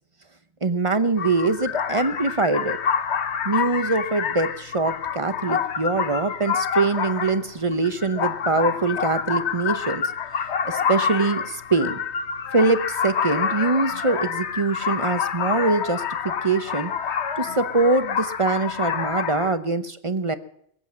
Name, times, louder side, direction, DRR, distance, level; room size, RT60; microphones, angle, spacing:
voice 1, 0.6-2.8 3.4-10.0 10.6-12.0 12.5-16.9 17.4-20.4, right 3 dB, 30° right, 12 dB, 0.8 m, -23 dB
sound 1, 1.2-19.5, left 7 dB, 60° left, 1.2 m, -27 dB
22.5 x 8.2 x 7.5 m, 0.69 s
omnidirectional pair, 1.3 m